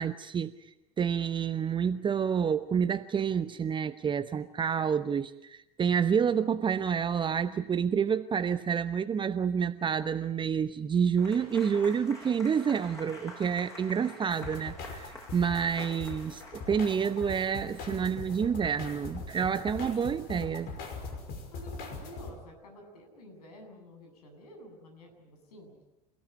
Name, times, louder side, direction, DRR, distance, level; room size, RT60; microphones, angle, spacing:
voice 1, 0.0-20.7, right 7 dB, 25° right, 12 dB, 0.9 m, -29 dB
Applause / Crowd, 11.2-18.0, left 2 dB, 15° left, 7.4 m, -48 dB
sound 1, 14.3-22.3, left 3 dB, 50° left, 5.7 m, -41 dB
voice 2, 21.5-25.8, equal, 70° left, 3 dB, 7.9 m, -50 dB
29.0 x 17.0 x 9.1 m, 0.94 s
figure-of-eight pair, 75°, 20 cm